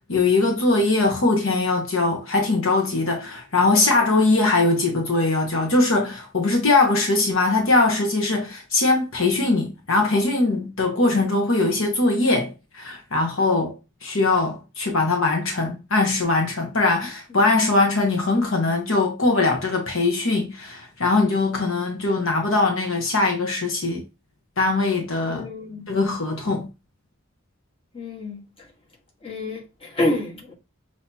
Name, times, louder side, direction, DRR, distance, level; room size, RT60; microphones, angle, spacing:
voice 1, 0.1-13.8 14.0-24.0 24.6-25.5 25.9-26.7, left 3 dB, 65° left, 1.1 m, -21 dB
voice 2, 25.2-25.8 27.9-28.4 29.2-30.5, left 1 dB, 25° left, 1.6 m, -28 dB
6.3 x 2.8 x 2.9 m
head